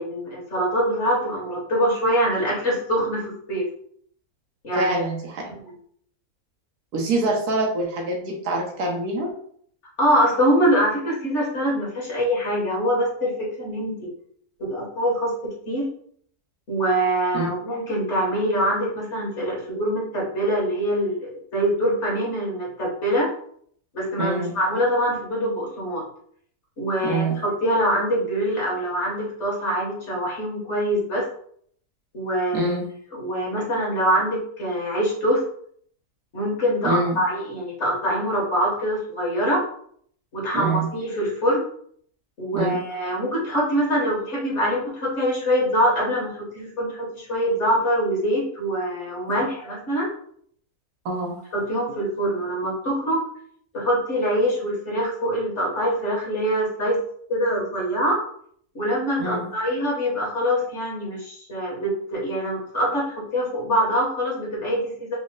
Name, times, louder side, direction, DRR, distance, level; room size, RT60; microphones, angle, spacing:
voice 1, 0.0-3.6 4.6-5.0 5.6-5.7 10.0-14.1 14.7-15.3 15.7-15.8 16.7-23.3 23.9-26.0 26.8-31.2 32.1-32.8 33.1-35.4 36.3-39.6 40.3-41.6 42.4-50.1 51.5-53.2 53.7-57.0 57.3-58.2 58.7-65.2, equal, 50° left, -4 dB, 1.6 m, -24 dB
voice 2, 4.7-5.5 6.9-9.3 17.3-17.5 24.2-24.5 27.0-27.3 32.5-32.9 36.8-37.2 40.5-40.9 42.5-42.8 51.0-51.3 59.2-59.5, right 2 dB, 90° right, 0 dB, 1.5 m, -25 dB
4.3 x 2.1 x 3.7 m, 0.63 s
omnidirectional pair, 1.6 m